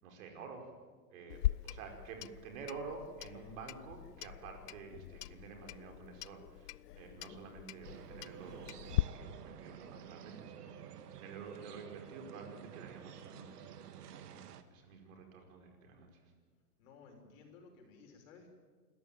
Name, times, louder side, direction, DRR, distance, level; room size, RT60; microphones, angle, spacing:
voice 1, 0.0-0.7 1.1-14.4 14.7-16.2, right 4 dB, 60° right, 3 dB, 5.4 m, -50 dB
Clock, 1.3-9.0, left 15 dB, 85° left, 0.6 m, -40 dB
sound 1, 7.8-14.6, right 9 dB, 80° right, 1.8 m, -51 dB
voice 2, 16.8-18.5, left 4 dB, 55° left, 3 dB, 6.3 m, -57 dB
27.0 x 14.5 x 9.3 m, 1.5 s
hypercardioid pair, 135°, 46 cm